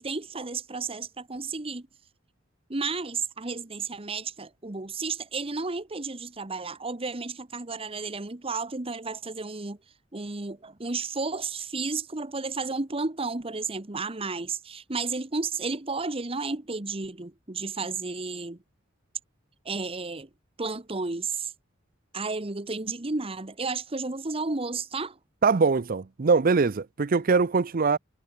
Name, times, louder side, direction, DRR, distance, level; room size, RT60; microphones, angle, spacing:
voice 1, 0.0-1.9 2.7-9.8 10.1-18.6 19.6-20.3 20.6-21.5 22.1-25.2, right 4 dB, 30° right, 1.2 m, -32 dB
voice 2, 25.4-28.0, right 4 dB, 45° right, 0.5 m, -22 dB
head